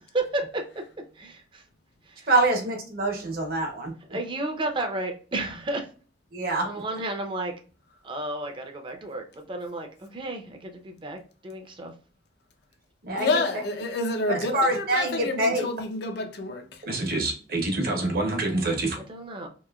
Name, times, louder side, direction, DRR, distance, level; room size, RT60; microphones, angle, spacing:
voice 1, 1.2-1.6 2.2-2.3 4.1-5.8 6.6-7.5 8.0-11.2 11.4-11.9 19.1-19.5, right 2 dB, 25° right, 0.6 m, -32 dB
voice 2, 2.3-4.2 6.3-6.8 13.0-13.6 14.3-15.6 16.8-19.0, right 2 dB, 55° right, 0.9 m, -26 dB
voice 3, 13.2-16.6, left 2 dB, 60° left, 0.5 m, -28 dB
3.0 x 2.7 x 2.3 m
head